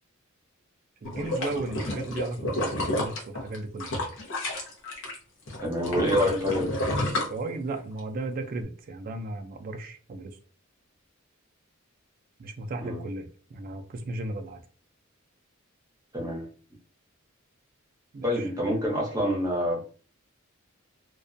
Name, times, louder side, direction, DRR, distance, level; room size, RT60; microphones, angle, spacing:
sound 1, 1.0-5.2 5.5-8.0 8.4-8.5, left 1 dB, 65° left, 0.7 m, -30 dB
voice 1, 1.0-3.9 6.0-6.3 7.3-10.4 12.4-14.6 18.1-18.5, right 2 dB, 45° right, 5 dB, 0.3 m, -35 dB
voice 2, 5.6-6.7 12.8-13.0 16.1-16.5 18.2-19.9, equal, 15° right, -2 dB, 0.8 m, -27 dB
2.3 x 2.1 x 2.5 m, 0.40 s
head